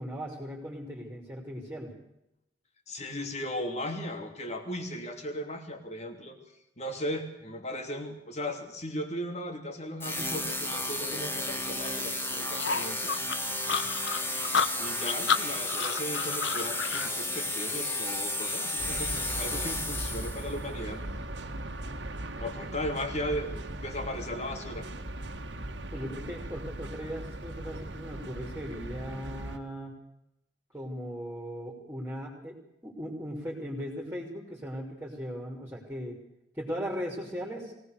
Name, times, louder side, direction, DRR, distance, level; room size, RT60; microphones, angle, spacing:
voice 1, 0.0-1.9 25.9-29.9 30.7-36.2 36.5-37.7, equal, 10° right, -2 dB, 3.4 m, -38 dB
voice 2, 2.9-6.4 6.8-13.1 14.8-21.0 22.4-24.9, equal, 40° left, 5 dB, 3.0 m, -36 dB
sound 1, 10.0-20.6, left 1 dB, 15° left, 2.4 m, -33 dB
sound 2, 12.6-17.1, left 6 dB, 85° left, 1.1 m, -30 dB
sound 3, 18.8-29.6, right 1 dB, 70° right, 1.8 m, -39 dB
22.5 x 18.0 x 6.8 m, 0.84 s
head